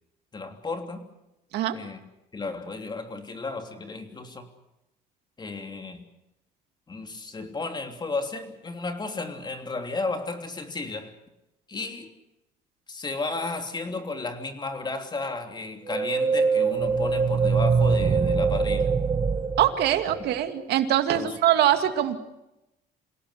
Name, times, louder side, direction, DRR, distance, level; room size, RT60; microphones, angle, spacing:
voice 1, 0.3-1.0 1.7-2.0 2.3-4.5 5.4-6.0 6.9-11.1 11.7-12.1 12.9-18.9 20.2-20.3 21.1-21.4, left 3 dB, 25° left, 5 dB, 3.2 m, -33 dB
sound 1, 15.9-20.5, right 5 dB, 30° right, 1.6 m, -23 dB
voice 2, 19.6-22.2, right 11 dB, 75° right, 7 dB, 2.4 m, -23 dB
27.5 x 17.5 x 8.2 m, 0.92 s
cardioid pair, 110°, 17 cm